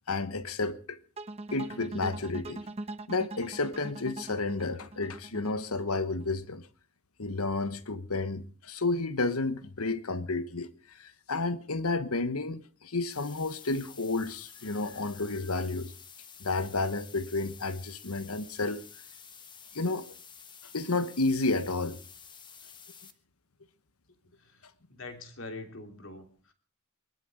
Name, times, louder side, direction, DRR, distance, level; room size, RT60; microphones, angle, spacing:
voice 1, 0.1-1.0 1.5-2.6 3.1-6.7 7.2-15.9 16.4-18.8 19.7-20.1 20.7-22.0, left 3 dB, 80° left, 1.3 m, -31 dB
sound 1, 1.2-6.3, right 2 dB, 30° right, 0.9 m, -41 dB
sound 2, 13.1-23.1, left 7 dB, 20° left, 1.2 m, -51 dB
voice 2, 24.4-26.5, left 2 dB, 60° left, 3.0 m, -44 dB
23.0 x 12.5 x 4.9 m
head